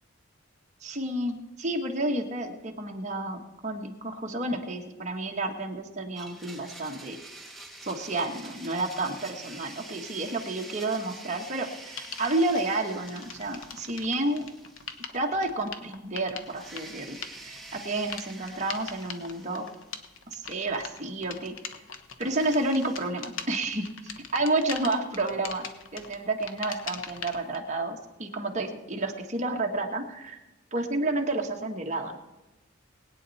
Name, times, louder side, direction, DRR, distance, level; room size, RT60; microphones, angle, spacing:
voice 1, 0.8-7.2 7.8-14.5 15.1-19.7 20.3-21.5 22.2-25.7 25.9-30.4 30.7-32.2, right 2 dB, 35° right, 1 dB, 1.4 m, -30 dB
Domestic sounds home sounds, 6.1-15.3 15.6-15.7 16.4-20.4 22.2-23.1, right 2 dB, ahead, 1.4 m, -47 dB
sound 1, 12.0-12.6 13.1-27.6, left 6 dB, 65° left, 1.1 m, -41 dB
21.0 x 9.0 x 4.2 m, 1.1 s
head